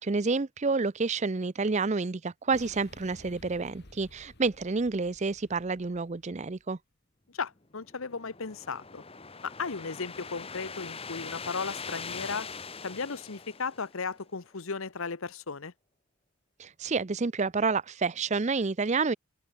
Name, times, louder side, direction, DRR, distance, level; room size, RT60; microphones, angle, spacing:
voice 1, 0.0-6.8 16.6-19.1, right 4 dB, 30° right, 0.5 m, -29 dB
sound 1, 2.5-6.7, left 1 dB, 50° left, 3.2 m, -54 dB
voice 2, 7.3-9.0 9.4-12.5 12.8-15.7, left 4 dB, 65° left, 1.0 m, -35 dB
sound 2, 7.7-14.3, left 5 dB, 25° left, 1.6 m, -42 dB
open air
head